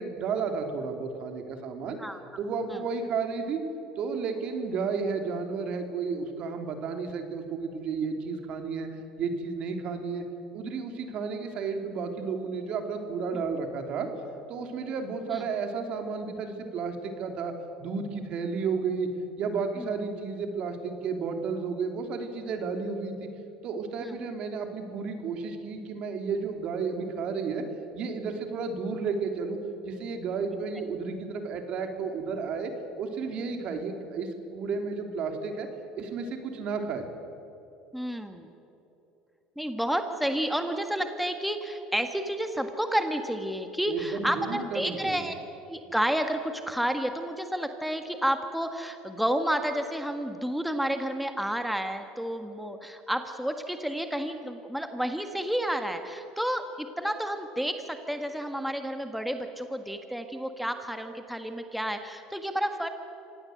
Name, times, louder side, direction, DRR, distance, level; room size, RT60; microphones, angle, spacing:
voice 1, 0.0-2.0 2.4-3.6 4.0-10.2 10.5-14.1 14.5-17.5 17.8-19.1 19.4-23.1 23.6-27.6 27.9-29.6 29.8-35.7 36.0-37.1 43.8-45.3, right 5 dB, 55° right, 5 dB, 3.1 m, -32 dB
voice 2, 37.9-38.5 39.6-45.3 45.7-62.9, equal, ahead, 6 dB, 1.7 m, -30 dB
26.0 x 17.5 x 7.9 m, 3.0 s
hypercardioid pair, 80°, 2 cm